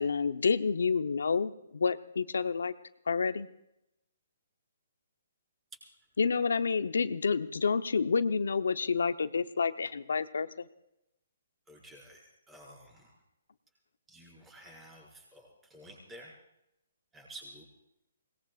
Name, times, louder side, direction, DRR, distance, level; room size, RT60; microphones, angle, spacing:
voice 1, 0.0-2.7 3.1-3.5 6.2-10.6, left 5 dB, 80° left, 11 dB, 0.8 m, -29 dB
voice 2, 11.7-13.1 14.1-16.3 17.1-17.6, right 1 dB, 10° right, -3 dB, 5.5 m, -51 dB
24.0 x 20.0 x 2.5 m, 0.84 s
hypercardioid pair, 150°, 0 cm